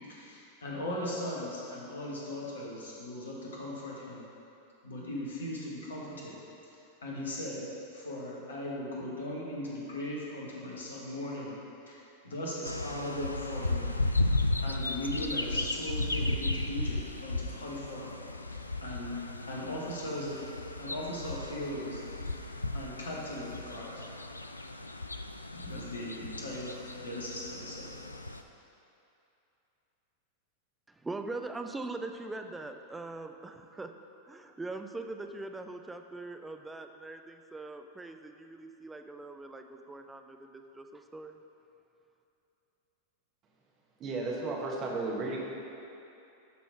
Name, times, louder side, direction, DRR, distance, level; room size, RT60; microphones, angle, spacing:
voice 1, 0.1-4.2 4.8-6.3 7.0-7.7 7.9-11.5 11.9-13.9 14.6-18.1 18.8-19.2 19.5-20.4 20.8-22.0 22.7-24.0 25.5-28.0, left 1 dB, 70° left, -4 dB, 1.7 m, -38 dB
sound 1, 12.6-28.4, left 2 dB, 85° left, 0.3 m, -35 dB
voice 2, 30.9-33.9 34.3-41.4, right 2 dB, 10° right, 6 dB, 0.5 m, -42 dB
voice 3, 44.0-45.4, right 3 dB, 30° right, -2 dB, 1.4 m, -33 dB
11.5 x 4.1 x 4.7 m, 2.8 s
figure-of-eight pair, 90°, 0 cm